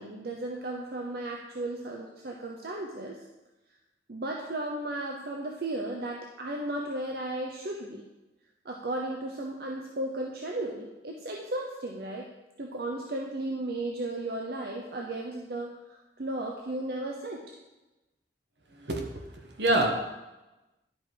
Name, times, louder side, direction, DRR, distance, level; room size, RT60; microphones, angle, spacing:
voice 1, 0.0-3.2 4.1-8.0 8.6-12.3 12.6-17.4, right 1 dB, 60° right, 1 dB, 0.7 m, -35 dB
voice 2, 18.8-19.9, right 1 dB, 75° right, 3 dB, 1.3 m, -27 dB
11.0 x 5.0 x 4.6 m, 1.1 s
head